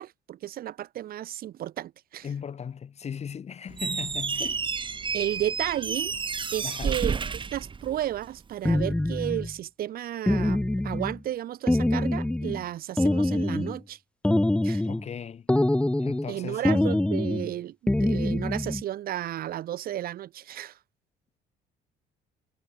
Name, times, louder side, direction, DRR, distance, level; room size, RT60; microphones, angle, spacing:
voice 1, 0.0-2.3 5.1-6.1 6.5-7.2 7.5-14.0 14.6-14.8 16.3-20.8, right 12 dB, 60° right, 1.3 m, -33 dB
voice 2, 2.2-4.6 6.6-6.9 14.8-15.5 16.0-16.6, left 7 dB, 40° left, 2.6 m, -37 dB
Squeak, 3.7-8.4, right 5 dB, 30° right, 2.4 m, -31 dB
sound 1, 8.6-9.5 10.3-11.2 11.7-12.6 13.0-13.8 14.2-15.1 15.5-16.3 16.6-17.5 17.9-18.8, left 1 dB, 5° left, 1.3 m, -25 dB
cardioid pair, 110°, 17 cm